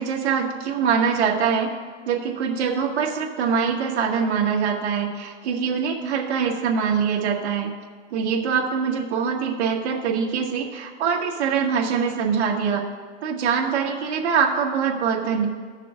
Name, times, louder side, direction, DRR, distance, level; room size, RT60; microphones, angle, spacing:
voice 1, 0.0-1.7 2.0-7.7 8.1-12.8 13.2-15.5, right 6 dB, 65° right, -1 dB, 1.8 m, -23 dB
18.5 x 6.7 x 2.5 m, 1.5 s
hypercardioid pair, 140°, 35 cm